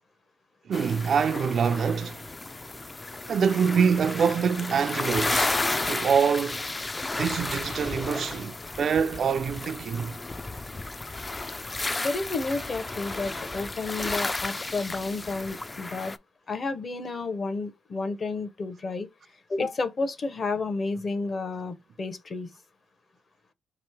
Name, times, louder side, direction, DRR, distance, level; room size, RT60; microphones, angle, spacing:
sound 1, 0.7-16.2, left 2 dB, 20° left, 0.3 m, -33 dB
voice 1, 0.7-2.2 3.3-6.7 7.2-10.1, right 6 dB, 55° right, 0.3 m, -25 dB
voice 2, 12.0-16.2 16.5-19.1 19.5-22.5, left 3 dB, 40° left, 0.8 m, -31 dB
3.0 x 2.8 x 4.5 m
cardioid pair, 90°, 0 cm